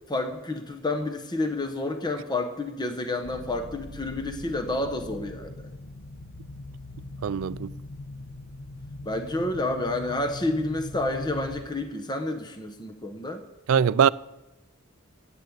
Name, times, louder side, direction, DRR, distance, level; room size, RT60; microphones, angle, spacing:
voice 1, 0.1-5.7 9.0-13.4, left 2 dB, 20° left, 0.9 m, -29 dB
sound 1, 3.2-11.6, left 2 dB, 55° left, 0.8 m, -41 dB
voice 2, 7.2-7.7 13.7-14.1, right 7 dB, 70° right, 0.3 m, -21 dB
10.5 x 9.2 x 7.9 m
head